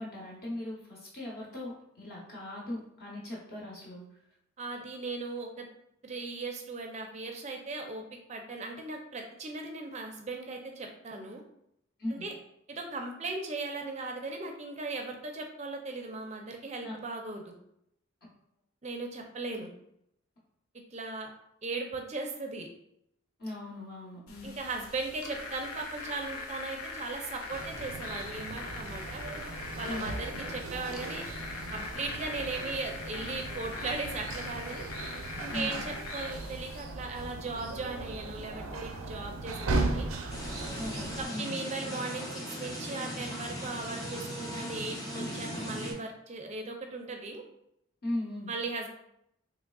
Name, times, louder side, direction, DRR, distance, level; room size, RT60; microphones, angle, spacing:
voice 1, 0.0-4.0 12.0-12.2 16.8-16.9 23.4-24.5 29.9-30.1 35.5-35.8 40.8-41.5 48.0-48.5, left 1 dB, 45° left, -5 dB, 0.8 m, -38 dB
voice 2, 4.6-5.7 6.0-8.0 8.3-11.4 12.1-12.3 12.7-17.5 18.8-19.7 20.9-21.3 21.6-22.7 24.4-29.2 29.8-31.2 31.7-34.8 35.4-40.1 41.2-47.4 48.5-48.9, right 3 dB, 30° right, 3 dB, 0.4 m, -38 dB
sound 1, 24.3-36.8, left 3 dB, 85° left, 0.5 m, -42 dB
sound 2, 27.5-41.3, right 2 dB, 85° right, 0.5 m, -37 dB
sound 3, 40.3-45.9, equal, 15° left, 0.6 m, -38 dB
3.5 x 3.1 x 2.3 m, 0.77 s
head